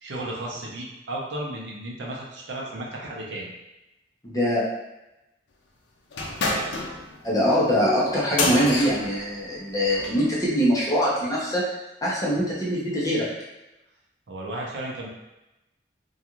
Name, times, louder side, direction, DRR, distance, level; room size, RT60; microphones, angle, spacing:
voice 1, 0.0-3.5 14.3-15.1, right 1 dB, 80° right, -3 dB, 0.6 m, -34 dB
voice 2, 4.2-4.7 7.2-11.6 12.0-13.3, equal, 20° left, -6 dB, 0.7 m, -23 dB
sound 1, 6.1-10.3, left 2 dB, 85° left, 0.5 m, -29 dB
2.4 x 2.3 x 2.9 m, 0.96 s
head